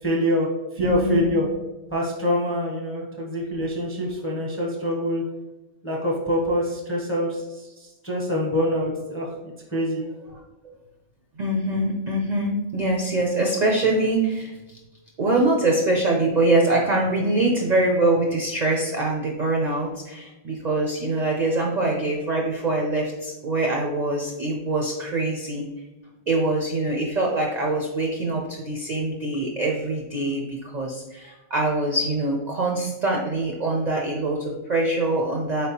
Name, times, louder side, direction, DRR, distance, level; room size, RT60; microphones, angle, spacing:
voice 1, 0.0-0.5 0.7-1.5 1.9-5.2 5.8-9.3 9.7-10.0, equal, 15° left, -2 dB, 0.5 m, -25 dB
voice 2, 0.8-1.3 10.6-10.7 11.4-14.8 15.2-25.7 26.3-35.7, right 2 dB, 55° right, 0 dB, 0.5 m, -24 dB
4.3 x 3.4 x 2.8 m, 1.0 s
omnidirectional pair, 1.3 m